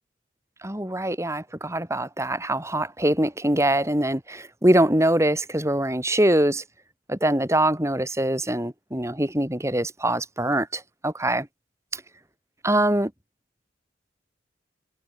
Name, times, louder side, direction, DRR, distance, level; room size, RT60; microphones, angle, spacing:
voice 1, 0.6-6.6 7.1-11.5 11.9-12.0 12.6-13.1, right 1 dB, 15° right, 5.5 m, -23 dB
head